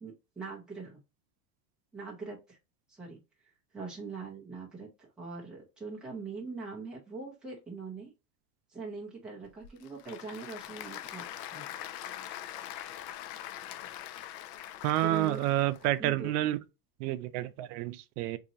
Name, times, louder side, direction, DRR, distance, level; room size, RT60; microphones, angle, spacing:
voice 1, 0.0-1.0 1.9-2.6 2.9-3.2 3.7-8.1 8.7-11.2 11.5-11.6 15.0-15.5 16.0-16.3, right 4 dB, ahead, 0.3 m, -42 dB
Applause / Crowd, 9.4-15.9, left 12 dB, 90° left, 0.6 m, -43 dB
voice 2, 14.8-16.6 17.0-18.4, right 14 dB, 65° right, 0.6 m, -29 dB
4.0 x 2.7 x 2.6 m
supercardioid pair, 170°, 49 cm